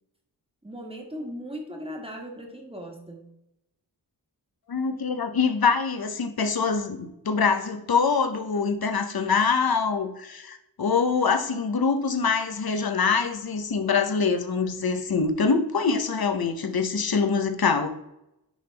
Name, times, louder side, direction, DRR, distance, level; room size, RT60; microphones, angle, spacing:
voice 1, 0.6-3.3, equal, 15° right, 1 dB, 1.4 m, -38 dB
voice 2, 4.7-17.9, left 5 dB, 60° left, 8 dB, 0.8 m, -24 dB
10.0 x 3.5 x 3.3 m, 0.85 s
wide cardioid pair, 75°, 41 cm